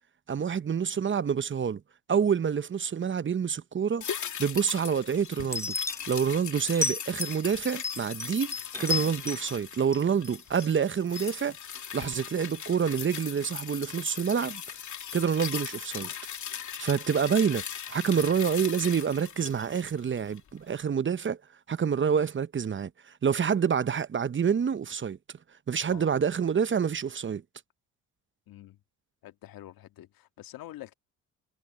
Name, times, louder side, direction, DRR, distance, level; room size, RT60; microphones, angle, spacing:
voice 1, 0.3-1.8 2.1-4.0 4.4-5.7 6.1-8.5 8.8-11.6 11.9-14.6 15.1-16.1 16.8-21.4 21.7-25.2 25.7-27.4, right 7 dB, 30° right, 0.9 m, -27 dB
sound 1, 4.0-20.5 20.8-20.9, left 8 dB, 55° left, 2.8 m, -39 dB
sound 2, 5.5-6.2 6.7-7.4 7.8-9.6 9.9-10.7 11.2-11.3, left 3 dB, 10° left, 0.8 m, -32 dB
voice 2, 28.5-28.8 29.2-30.9, left 14 dB, 70° left, 1.8 m, -46 dB
supercardioid pair, 60°, 36 cm